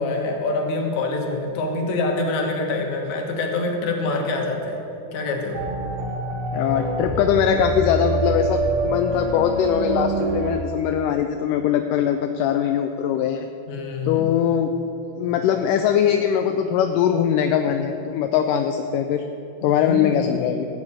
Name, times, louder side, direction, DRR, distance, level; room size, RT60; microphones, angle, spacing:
voice 1, 0.0-4.8 5.1-5.6 13.7-14.3 19.6-20.3, left 2 dB, 65° left, 2 dB, 2.6 m, -25 dB
sound 1, 5.5-10.6, right 2 dB, 60° right, 1.6 m, -25 dB
voice 2, 6.5-13.5 14.1-14.7 15.2-19.2 19.6-20.7, left 9 dB, 80° left, 6 dB, 2.1 m, -21 dB
14.5 x 6.1 x 8.7 m, 2.8 s
omnidirectional pair, 3.8 m